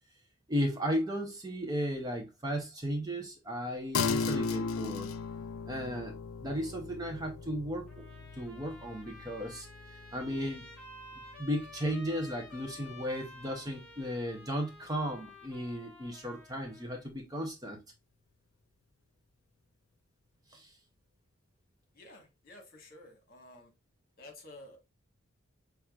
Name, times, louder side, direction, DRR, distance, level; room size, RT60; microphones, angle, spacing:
voice 1, 0.5-5.1 5.7-6.1 6.4-8.1 8.4-9.7 10.1-10.6 11.4-17.8 20.5-20.8, equal, 20° right, 0.7 m, -35 dB
sound 1, 3.9-13.7, left 5 dB, 80° left, 0.4 m, -38 dB
Trumpet, 7.9-17.1, left 2 dB, 5° left, 1.6 m, -52 dB
voice 2, 21.9-23.7 24.2-24.8, left 2 dB, 45° left, 1.5 m, -52 dB
5.8 x 3.5 x 2.3 m
head